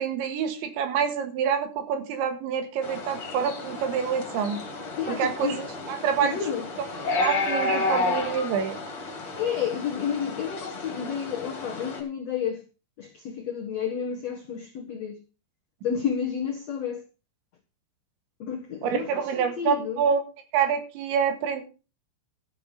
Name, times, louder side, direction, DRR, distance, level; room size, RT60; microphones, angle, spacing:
voice 1, 0.0-4.6 5.1-6.4 7.1-8.8 18.8-20.2 20.5-21.6, right 7 dB, 85° right, 4.0 m, -27 dB
sound 1, 2.8-12.0, left 3 dB, 35° left, 2.9 m, -32 dB
voice 2, 5.0-5.6 6.2-6.7 9.4-12.6 13.0-15.2 15.8-17.0 18.4-20.1, left 8 dB, 80° left, 1.4 m, -31 dB
13.5 x 6.7 x 5.6 m
omnidirectional pair, 5.2 m